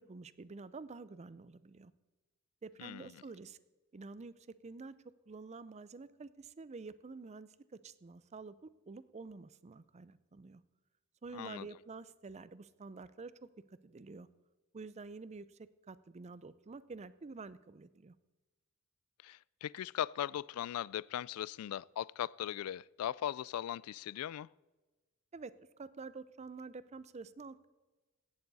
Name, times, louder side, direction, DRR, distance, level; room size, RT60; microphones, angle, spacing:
voice 1, 0.0-1.9 2.6-3.6 3.9-4.3 4.6-4.9 5.3-7.5 7.8-10.6 11.2-14.3 14.7-15.6 15.9-18.1 25.3-25.5 25.8-27.7, right 4 dB, 30° right, 0.5 m, -49 dB
voice 2, 11.3-11.7 19.2-24.5, left 10 dB, 75° left, 0.3 m, -39 dB
16.0 x 11.5 x 4.1 m
head